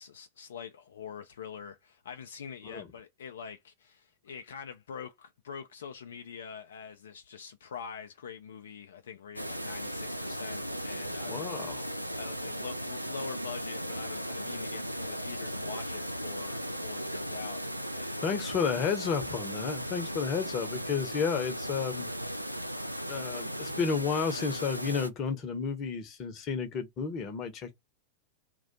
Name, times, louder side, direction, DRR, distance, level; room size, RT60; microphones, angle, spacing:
voice 1, 0.0-11.6 12.1-17.6 18.0-18.1, left 7 dB, 65° left, 0.3 m, -44 dB
sound 1, 9.4-25.1, equal, 90° right, 0.3 m, -36 dB
voice 2, 11.3-11.9 18.2-22.1 23.1-27.7, left 6 dB, 35° left, 0.7 m, -32 dB
2.4 x 2.2 x 3.8 m
figure-of-eight pair, 90°, 0 cm